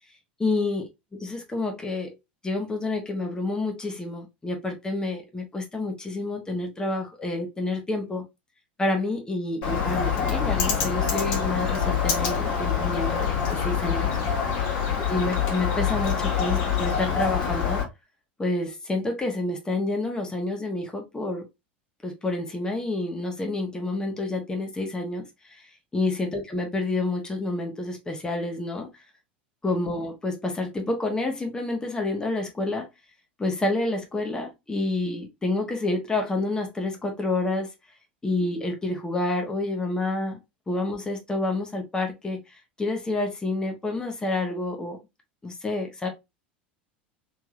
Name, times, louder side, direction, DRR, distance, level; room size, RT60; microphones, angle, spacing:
voice 1, 0.4-2.1 2.4-8.2 8.8-14.1 14.6-14.7 15.1-17.8 18.4-21.5 22.0-25.6 25.9-28.9 29.6-32.9 33.4-37.7 38.2-40.4 40.7-42.4 42.8-45.0 45.4-46.1, left 2 dB, 15° left, 1.1 m, -28 dB
Bird, 9.6-17.8, left 7 dB, 50° left, 1.5 m, -25 dB
3.4 x 3.3 x 2.5 m
figure-of-eight pair, 80°, 6 cm